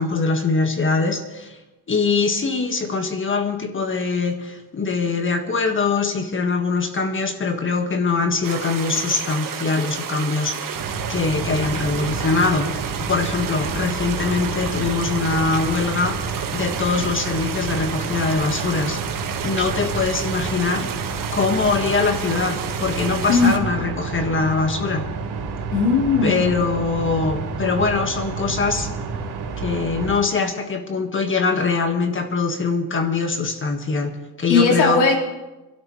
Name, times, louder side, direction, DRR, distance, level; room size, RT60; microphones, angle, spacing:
voice 1, 0.0-1.6 1.9-10.8 11.1-20.9 21.3-25.1 26.2-28.9 29.6-35.0, left 4 dB, 30° left, 6 dB, 1.6 m, -23 dB
sound 1, 8.4-23.6, right 8 dB, 55° right, 1.6 m, -31 dB
sound 2, 10.7-30.2, right 4 dB, 85° right, 3.7 m, -30 dB
voice 2, 25.7-26.6 34.5-35.2, left 4 dB, 80° left, -1 dB, 3.9 m, -18 dB
26.0 x 12.5 x 3.2 m, 1.1 s
cardioid pair, 120°, 39 cm